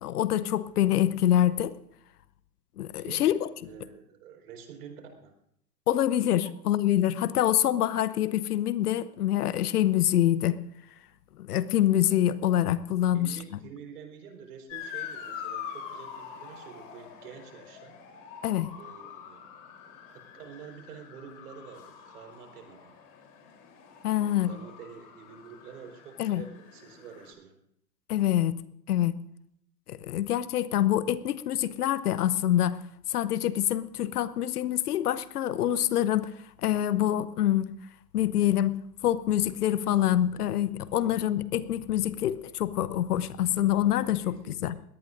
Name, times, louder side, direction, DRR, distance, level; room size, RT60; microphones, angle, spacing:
voice 1, 0.0-1.8 2.8-3.5 5.9-10.6 11.4-13.4 18.4-18.7 24.0-24.5 26.2-26.4 28.1-28.5 28.9-29.2 29.9-32.8 33.1-36.3 36.6-37.8 38.1-44.7, left 12 dB, 65° left, 16 dB, 0.9 m, -26 dB
voice 2, 2.9-3.4 3.6-5.3 6.4-6.5 13.1-17.9 18.8-19.5 20.1-22.9 24.1-27.6 41.0-41.2 44.2-44.8, right 7 dB, 60° right, 3 dB, 4.3 m, -48 dB
Motor vehicle (road) / Siren, 14.7-27.3, left 8 dB, 50° left, 3.6 m, -44 dB
21.0 x 17.5 x 2.6 m, 0.74 s
hypercardioid pair, 120°, 50 cm